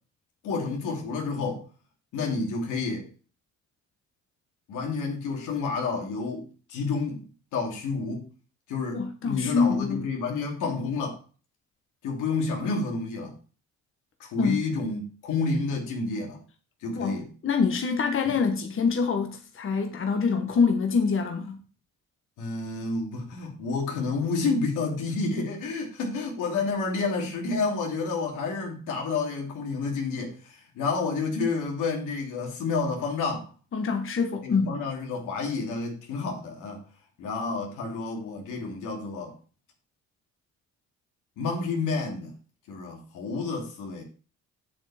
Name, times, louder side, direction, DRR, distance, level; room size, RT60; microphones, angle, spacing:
voice 1, 0.4-1.6 2.1-3.1 4.7-7.2 7.5-8.3 8.7-11.2 12.0-13.4 14.2-16.4 16.8-17.3 22.4-33.5 34.4-36.8 37.2-39.3 41.4-42.3 42.7-44.0, left 4 dB, 90° left, 2.8 m, -30 dB
voice 2, 8.9-10.1 14.4-14.6 17.0-21.6 33.7-34.8, left 5 dB, 45° left, 1.2 m, -25 dB
7.5 x 7.3 x 4.3 m
cardioid pair, 90°, 30 cm